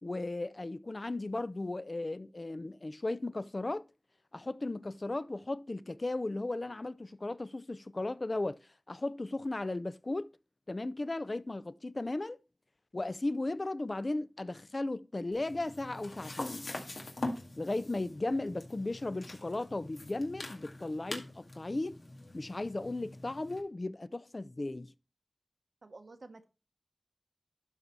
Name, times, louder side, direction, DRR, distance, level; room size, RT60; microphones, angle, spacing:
voice 1, 0.0-3.9 4.3-8.6 8.9-10.3 10.7-12.4 12.9-16.7 17.6-22.0 22.3-24.9, left 2 dB, 50° left, 0.5 m, -36 dB
sound 1, 15.3-23.6, left 2 dB, 85° left, 2.0 m, -44 dB
voice 2, 25.8-26.4, right 3 dB, 90° right, 1.1 m, -50 dB
12.0 x 4.1 x 4.6 m
wide cardioid pair, 60°, 0 cm